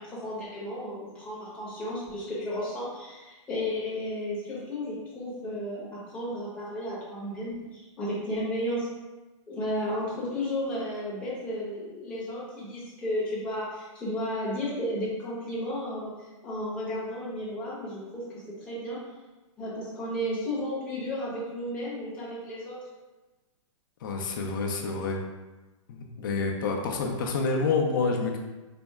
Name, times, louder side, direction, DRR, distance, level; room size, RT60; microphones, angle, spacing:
voice 1, 0.0-8.9 9.5-19.0 19.6-22.8, left 1 dB, 5° left, -9 dB, 0.9 m, -33 dB
voice 2, 24.0-25.2 25.9-28.4, left 4 dB, 40° left, 1 dB, 0.6 m, -28 dB
4.2 x 2.0 x 3.5 m, 1.1 s
hypercardioid pair, 170°, 17 cm